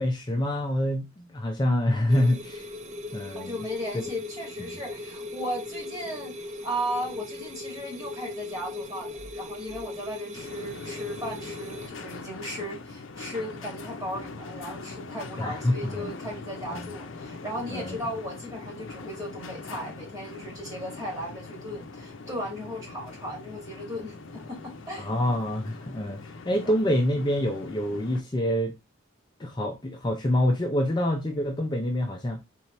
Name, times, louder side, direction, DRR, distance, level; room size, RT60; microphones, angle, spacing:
voice 1, 0.0-2.7 3.1-3.6 4.6-4.7 15.4-16.1 16.7-16.9 17.7-18.0 25.0-28.8 29.4-32.4, left 1 dB, 20° left, 0.5 m, -26 dB
sound 1, 2.1-11.9, left 2 dB, 35° right, 0.5 m, -39 dB
voice 2, 3.3-25.1, equal, 20° right, 1.8 m, -36 dB
sound 2, 10.3-28.2, left 3 dB, 75° left, 0.6 m, -42 dB
3.9 x 3.0 x 3.0 m
head